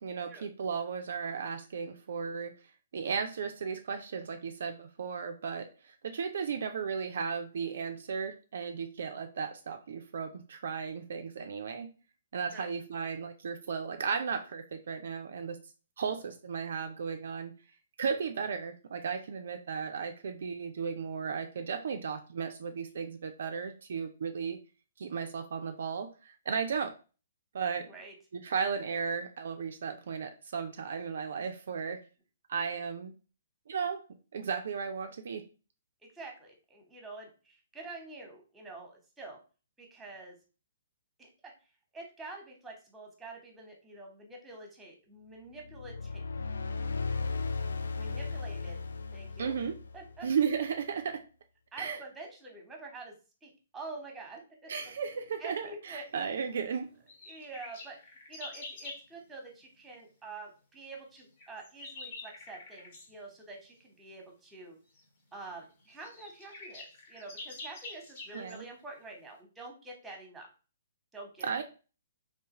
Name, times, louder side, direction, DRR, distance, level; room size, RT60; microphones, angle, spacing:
voice 1, 0.0-2.5 2.9-11.9 12.3-15.6 16.0-17.5 18.0-24.6 25.0-27.0 27.5-27.9 28.3-32.0 32.5-33.1 33.7-34.0 34.3-35.4 49.4-49.7 50.2-51.2 51.8-52.0 54.7-56.9 68.3-68.6 71.4-71.6, right 6 dB, 60° right, 6 dB, 0.4 m, -35 dB
voice 2, 36.1-39.4 39.8-40.4 41.2-41.5 41.9-46.2 47.9-48.8 49.1-49.5 49.9-50.3 51.7-53.1 53.4-54.7 55.4-56.3 57.3-58.0 58.3-64.8 65.3-70.5 71.1-71.6, right 3 dB, 10° right, 1 dB, 1.0 m, -47 dB
sound 1, 45.6-50.3, left 4 dB, 70° left, 0.3 m, -36 dB
sound 2, 57.1-59.0 61.2-63.1 64.9-65.0 65.6-65.7 65.9-68.6, left 3 dB, 50° left, 1.1 m, -46 dB
3.3 x 2.7 x 2.9 m, 0.35 s
figure-of-eight pair, 125°, 0 cm